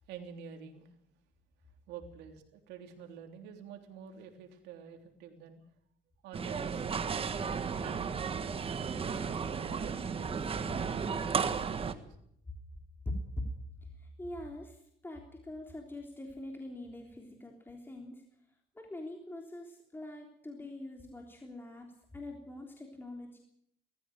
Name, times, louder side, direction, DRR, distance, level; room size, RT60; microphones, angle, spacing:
voice 1, 0.1-0.9 1.9-5.6 6.2-8.3 8.7-11.1 11.4-12.2, right 7 dB, 90° right, 5 dB, 3.4 m, -49 dB
sound 1, 6.3-11.9, right 6 dB, 35° right, 1.5 m, -34 dB
voice 2, 13.1-13.5 14.0-18.2 18.8-21.9 22.1-23.4, left 1 dB, 10° left, 1 dB, 3.5 m, -43 dB
19.5 x 14.5 x 9.1 m, 0.72 s
cardioid pair, 110°, 17 cm